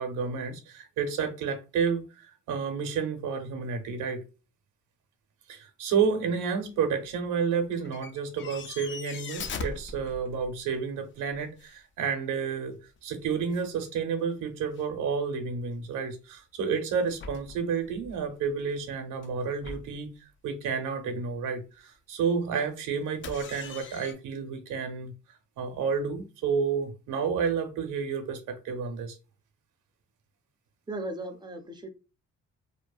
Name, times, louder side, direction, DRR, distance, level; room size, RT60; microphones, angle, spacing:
voice 1, 0.0-4.2 5.5-20.1 20.4-25.1 25.6-29.2, right 6 dB, 85° right, 0.6 m, -30 dB
sound 1, 6.8-7.2 7.7-10.8 11.2-11.8 13.0-13.1 13.2-13.9 14.2-14.3 14.8-14.9 17.0-18.2 19.2-19.3 19.6-20.1 23.2-24.1, left 4 dB, 40° left, 0.4 m, -41 dB
voice 2, 30.9-31.9, right 2 dB, 15° right, 0.5 m, -36 dB
2.7 x 2.1 x 2.3 m
cardioid pair, 90°, 30 cm